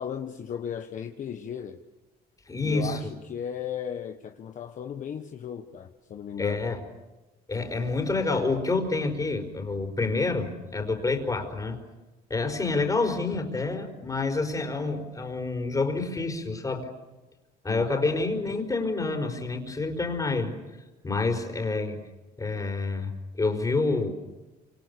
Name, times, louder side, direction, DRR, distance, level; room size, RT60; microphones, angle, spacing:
voice 1, 0.0-1.8 2.6-6.6 17.7-17.9, left 8 dB, 50° left, 5 dB, 1.3 m, -36 dB
voice 2, 2.5-3.0 6.4-6.8 7.5-11.8 12.3-16.9 17.6-20.5 21.0-22.0 22.4-24.1, left 3 dB, 20° left, 4 dB, 4.8 m, -28 dB
28.5 x 27.0 x 6.9 m, 1.1 s
cardioid pair, 110°, 17 cm